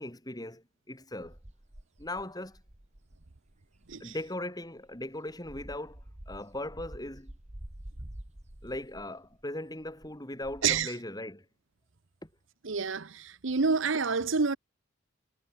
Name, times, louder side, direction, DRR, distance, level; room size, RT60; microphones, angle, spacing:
voice 1, 0.0-1.4 2.0-2.6 4.0-7.3 8.6-11.4 12.2-12.3, left 1 dB, 20° left, 4.2 m, -39 dB
sound 1, 1.2-4.3 4.8-9.4 9.8-10.8, right 1 dB, 35° right, 1.9 m, -48 dB
voice 2, 12.6-14.6, right 5 dB, 65° right, 0.9 m, -28 dB
head